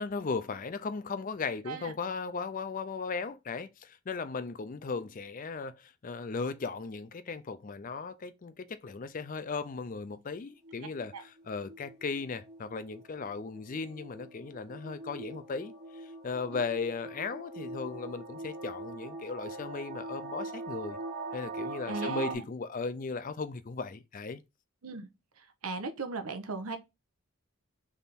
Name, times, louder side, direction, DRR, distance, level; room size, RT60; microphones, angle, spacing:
voice 1, 0.0-21.0 21.3-24.4, left 4 dB, 40° left, 0.5 m, -37 dB
sound 1, 10.4-22.3, right 2 dB, 50° right, 1.4 m, -42 dB
voice 2, 21.9-22.4 24.8-25.1 25.6-26.8, right 4 dB, 90° right, 0.8 m, -36 dB
3.6 x 3.4 x 4.1 m
head